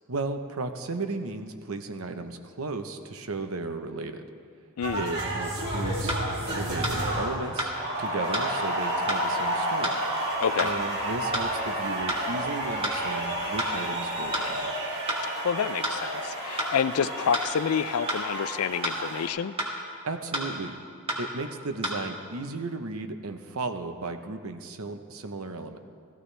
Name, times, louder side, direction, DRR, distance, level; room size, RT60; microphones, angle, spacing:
voice 1, 0.1-4.3 4.9-6.2 6.5-7.7 8.0-10.0 10.6-14.7 20.0-20.7 21.2-25.8, right 3 dB, 80° right, 7 dB, 0.9 m, -35 dB
voice 2, 4.8-5.1 10.4-10.7 15.4-19.5, left 7 dB, 85° left, 15 dB, 0.4 m, -28 dB
sound 1, 4.8-19.3, right 1 dB, 55° right, 2.4 m, -31 dB
sound 2, 6.1-6.2 6.8-7.0 7.6-7.7 8.3-8.5 9.1-9.2 9.8-10.0 10.6-10.7 11.3-11.5 12.1-12.2 12.8-13.0 13.6-13.7 14.3-14.5 15.1-15.2 15.8-16.0 16.6-16.7 17.3-17.5 18.1-18.2 18.8-19.0 19.6-19.7 20.3-20.5 21.1-21.2 21.8-22.0, right 1 dB, 30° right, 1.8 m, -29 dB
16.5 x 14.5 x 3.3 m, 2.2 s
head